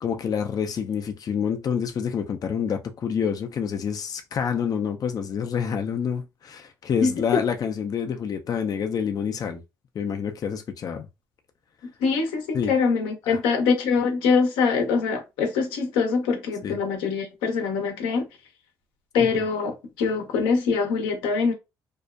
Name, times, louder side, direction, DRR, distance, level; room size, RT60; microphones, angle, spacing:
voice 1, 0.0-9.6 9.9-11.1 12.5-12.7 16.6-16.8 19.2-19.3, left 7 dB, 50° left, 0.4 m, -27 dB
voice 2, 7.0-7.4 11.8-18.3 19.1-21.5, left 5 dB, 85° left, 0.6 m, -24 dB
2.5 x 2.1 x 2.3 m
supercardioid pair, 55°, 8 cm